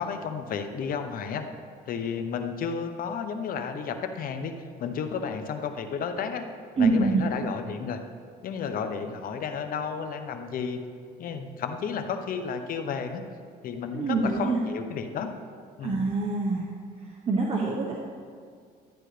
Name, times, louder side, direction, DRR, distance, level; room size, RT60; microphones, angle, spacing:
voice 1, 0.0-1.5 1.9-4.5 4.8-6.5 6.8-8.0 8.4-10.8 11.2-13.2 13.6-15.3 15.8-16.0, left 6 dB, 55° left, 7 dB, 0.9 m, -32 dB
voice 2, 6.8-7.2 13.9-14.6 15.8-16.7 17.3-18.0, right 3 dB, 35° right, -2 dB, 1.0 m, -25 dB
12.0 x 9.0 x 3.3 m, 2.1 s
cardioid pair, 110°, 17 cm